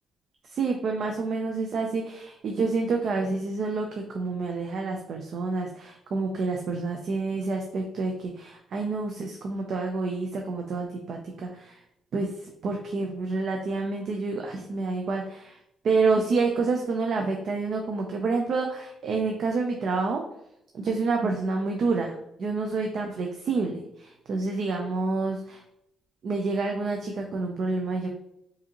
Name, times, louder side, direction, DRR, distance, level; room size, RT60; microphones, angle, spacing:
voice 1, 0.5-11.8 12.1-15.6 15.8-20.2 20.7-25.6 26.2-28.1, right 3 dB, 60° right, 2 dB, 0.5 m, -28 dB
4.8 x 2.7 x 2.9 m, 0.79 s
cardioid pair, 90°, 0 cm